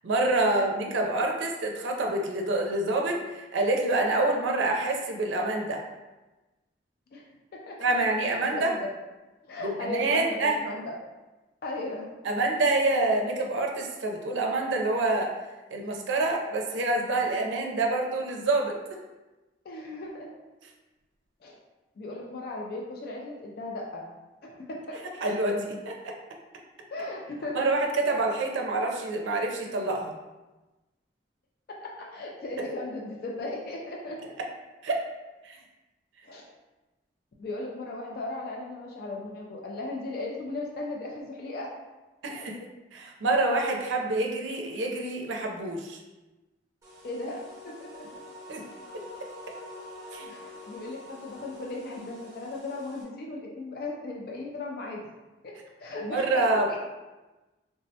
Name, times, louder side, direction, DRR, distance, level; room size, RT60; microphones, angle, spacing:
voice 1, 0.0-5.8 7.8-8.7 9.6-10.6 12.2-15.3 15.7-18.7 25.2-26.1 27.5-30.2 34.8-35.0 35.4-35.6 42.2-42.6 42.9-46.0 48.5-48.6 48.9-49.0 50.1-50.3 56.0-56.7, right 2 dB, 85° right, 1 dB, 0.4 m, -27 dB
voice 2, 8.5-8.9 9.5-10.3 10.6-10.9 11.6-12.0 19.6-20.3 21.4-21.6 22.0-24.0 24.4-25.0 26.9-27.7 31.8-34.2 36.2-36.4 37.4-41.7 47.0-47.9 50.3-55.0 55.8-56.8, left 2 dB, 50° left, -2 dB, 0.3 m, -36 dB
sound 1, 46.8-53.0, left 1 dB, 15° right, 0.7 m, -46 dB
3.4 x 2.1 x 2.7 m, 1.1 s
head